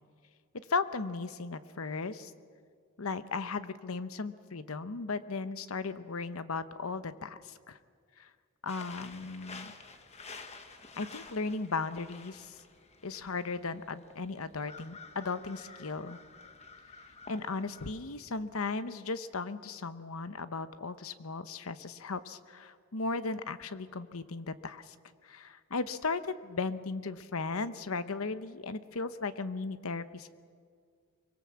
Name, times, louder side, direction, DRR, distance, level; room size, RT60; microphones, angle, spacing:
voice 1, 0.7-2.3 3.0-7.8 8.2-8.3 8.6-9.7 10.9-12.5 13.0-16.2 17.3-24.9 25.2-30.3, left 4 dB, 75° left, 12 dB, 0.9 m, -36 dB
sound 1, 8.7-17.9, left 4 dB, 30° left, 1.3 m, -50 dB
24.0 x 22.5 x 7.5 m, 2.1 s
head